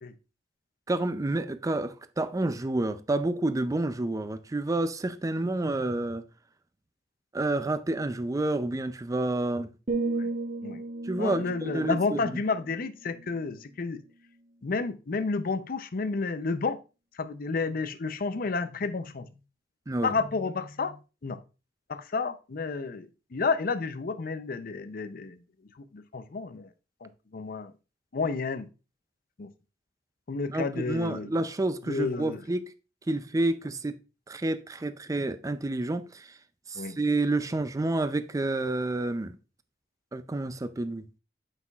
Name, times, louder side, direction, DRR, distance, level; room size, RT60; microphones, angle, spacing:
voice 1, 0.9-6.3 7.3-9.7 11.0-12.3 19.9-20.2 30.5-32.7 33.1-34.0 34.3-36.4 36.7-39.4 40.1-41.0, right 2 dB, 20° right, 0.4 m, -29 dB
sound 1, 9.9-13.9 14.2-14.5, right 3 dB, 40° right, 0.9 m, -35 dB
voice 2, 11.2-14.0 14.6-16.8 17.1-19.3 20.0-21.4 21.9-25.4 25.8-26.7 27.0-27.7 28.1-28.7 29.4-29.5 30.3-31.3 31.9-32.4 36.7-37.0, left 4 dB, 50° left, 0.6 m, -31 dB
8.1 x 5.5 x 2.4 m
head